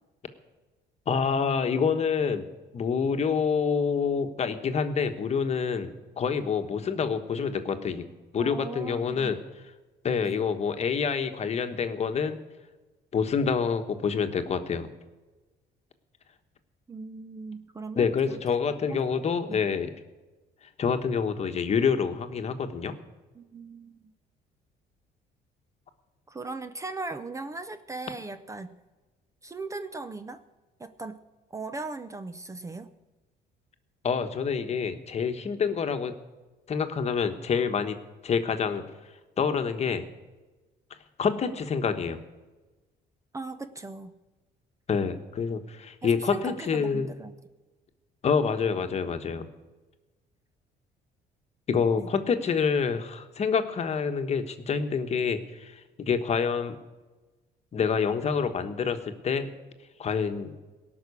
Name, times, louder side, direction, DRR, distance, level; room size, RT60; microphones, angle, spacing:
voice 1, 1.1-2.5 2.7-8.0 8.3-9.4 10.0-12.4 13.1-14.9 18.0-19.9 20.8-22.9 34.0-36.1 36.7-38.0 38.2-38.8 39.4-40.0 41.2-42.2 44.9-47.1 48.2-49.5 51.7-56.8 57.7-59.5 60.0-60.5, left 6 dB, 40° left, 8 dB, 1.2 m, -27 dB
voice 2, 8.4-9.4 10.2-10.4 16.9-19.7 23.3-24.1 26.3-28.7 29.4-30.4 30.8-31.2 31.5-32.9 43.3-44.1 46.2-47.3 51.9-52.1, right 3 dB, 20° right, 11 dB, 0.6 m, -39 dB
18.0 x 6.0 x 8.3 m, 1.2 s
cardioid pair, 110°, 17 cm